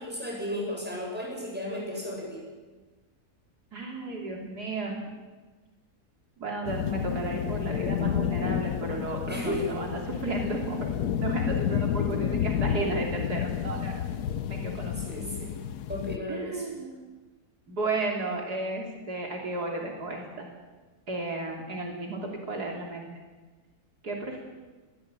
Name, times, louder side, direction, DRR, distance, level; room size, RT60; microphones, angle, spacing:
voice 1, 0.0-2.4 9.3-9.9 12.7-12.9 15.1-15.5 15.9-16.6, left 1 dB, 5° right, -2 dB, 7.3 m, -34 dB
voice 2, 3.7-5.0 6.4-10.9 11.2-14.1 14.5-14.9 16.3-16.9 17.7-20.5 21.1-23.1 24.0-24.4, right 2 dB, 80° right, 0 dB, 3.7 m, -33 dB
sound 1, 6.7-16.2, left 9 dB, 85° left, 1.4 m, -30 dB
21.0 x 15.0 x 9.0 m, 1.3 s
omnidirectional pair, 1.7 m